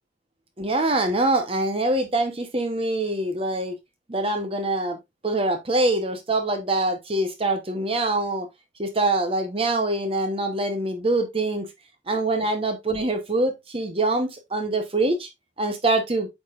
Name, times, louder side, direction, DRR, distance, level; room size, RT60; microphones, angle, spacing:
voice 1, 0.6-3.7 4.1-5.0 5.2-8.5 8.8-11.7 12.1-15.3 15.6-16.3, right 2 dB, 30° right, 1.0 m, -24 dB
8.6 x 5.8 x 2.5 m
head